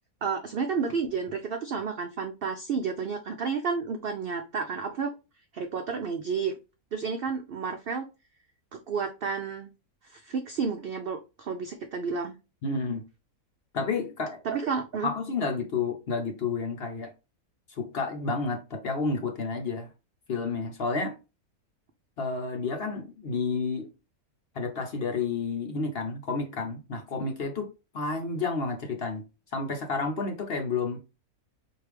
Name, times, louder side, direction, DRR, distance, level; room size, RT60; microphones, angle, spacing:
voice 1, 0.2-5.1 5.5-6.5 6.9-8.1 8.7-9.7 10.0-12.3 14.4-15.1, right 5 dB, 75° right, 0.5 m, -31 dB
voice 2, 12.6-13.0 13.7-14.4 15.0-17.1 17.7-19.9 20.3-21.2 22.2-23.9 24.5-27.7 27.9-29.2 29.5-31.0, left 4 dB, 55° left, 0.8 m, -30 dB
4.7 x 2.6 x 3.3 m
omnidirectional pair, 1.6 m